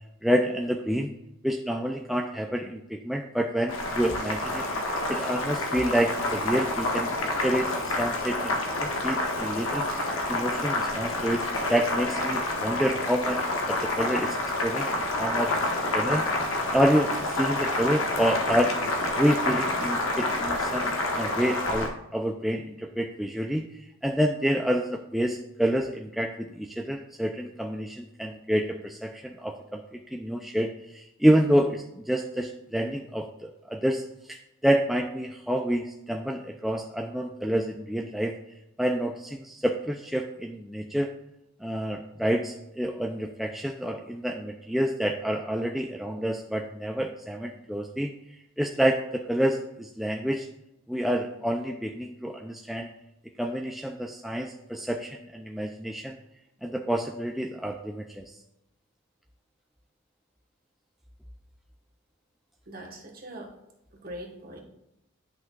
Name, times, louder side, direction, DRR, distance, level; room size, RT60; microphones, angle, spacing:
voice 1, 0.2-1.1 1.4-4.7 5.1-7.1 7.4-10.0 10.3-15.7 15.9-16.3 16.7-18.8 19.2-23.7 24.0-34.0 34.3-34.4 34.6-38.3 38.8-41.1 41.6-48.1 48.6-50.5 50.9-52.9 53.4-56.2 56.6-58.3, equal, ahead, 2 dB, 0.3 m, -28 dB
Boiling, 3.7-21.9, left 2 dB, 80° left, 1.2 m, -28 dB
voice 2, 62.7-63.5 63.9-64.6, right 1 dB, 45° right, 1 dB, 1.3 m, -41 dB
10.5 x 5.8 x 2.4 m, 0.86 s
head